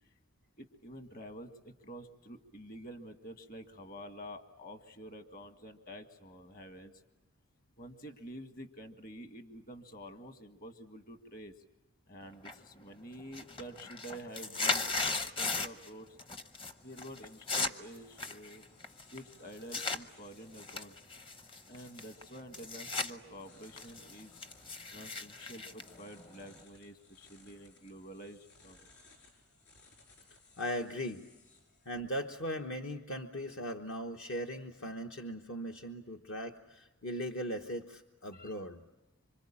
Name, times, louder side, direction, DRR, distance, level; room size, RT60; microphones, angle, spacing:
voice 1, 0.6-6.9 7.8-11.5 12.1-16.2 16.8-18.7 19.1-21.0 21.7-24.4 24.9-28.9 38.3-38.5, equal, 40° left, 7 dB, 1.7 m, -49 dB
sound 1, 12.5-12.9 13.2-15.9 16.2-16.7 17.0-20.0 20.5-23.1 23.5-26.6, left 3 dB, 25° left, 0.8 m, -37 dB
sound 2, 15.6-32.7, left 3 dB, 90° left, 7.3 m, -64 dB
voice 2, 30.6-31.2 31.8-38.8, equal, 55° left, 2 dB, 1.1 m, -39 dB
26.5 x 25.0 x 8.6 m, 1.1 s
head